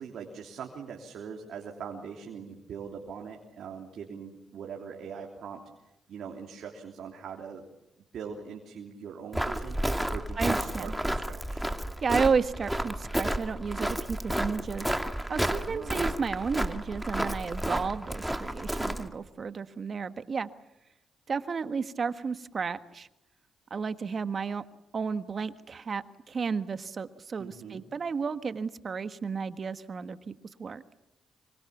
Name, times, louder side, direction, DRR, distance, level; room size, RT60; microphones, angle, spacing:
voice 1, 0.0-5.6 6.1-7.6 8.1-11.6 15.5-16.0 27.4-27.8, right 6 dB, 75° right, 1 dB, 3.3 m, -42 dB
Walk footsteps, 9.3-19.1, right 1 dB, 5° right, 2.4 m, -31 dB
voice 2, 10.4-10.9 12.0-14.9 15.3-20.5 21.3-23.1 23.7-24.6 24.9-30.3 30.6-30.8, right 5 dB, 50° right, 11 dB, 1.5 m, -32 dB
26.5 x 24.5 x 7.2 m, 0.91 s
supercardioid pair, 55°, 0 cm